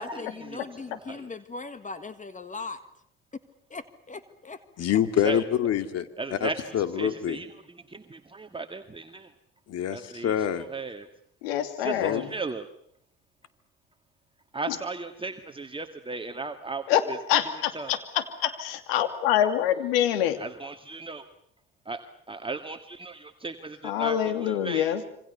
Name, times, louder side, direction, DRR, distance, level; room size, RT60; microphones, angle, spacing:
voice 1, 0.0-2.8 3.7-4.6, left 3 dB, 25° left, 12 dB, 1.7 m, -39 dB
voice 2, 4.8-7.4 9.7-10.7 12.0-12.2, left 10 dB, 55° left, 10 dB, 2.4 m, -26 dB
voice 3, 6.2-7.5 7.9-9.3 9.9-10.3 10.7-11.1 11.8-12.7 14.5-16.8 17.8-17.9 20.4-21.2 21.9-22.0 22.3-24.9, right 3 dB, 15° right, 6 dB, 1.9 m, -36 dB
voice 4, 11.4-12.3 14.7-14.8 16.9-20.4 23.8-25.0, left 11 dB, 80° left, 10 dB, 2.6 m, -26 dB
27.0 x 25.0 x 6.9 m, 0.70 s
hypercardioid pair, 60°, 30 cm